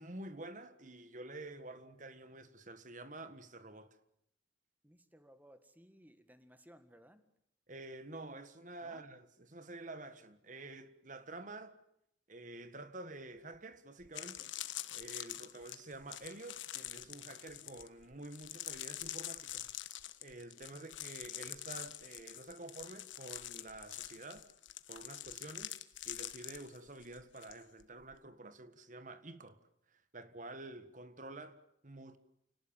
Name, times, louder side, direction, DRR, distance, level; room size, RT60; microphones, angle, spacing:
voice 1, 0.0-4.0 7.7-11.8 12.3-14.5 14.9-19.7 20.2-24.5 24.9-25.8 26.0-29.6 29.9-32.2, right 2 dB, 45° right, 1.6 m, -49 dB
voice 2, 4.8-7.2 8.8-9.0 15.2-15.6 20.6-20.9 30.8-30.9, equal, 10° right, 1.8 m, -61 dB
sound 1, 13.5-13.6 14.0-27.5 27.8-28.1, left 13 dB, 85° left, 1.4 m, -45 dB
29.0 x 19.0 x 7.4 m
head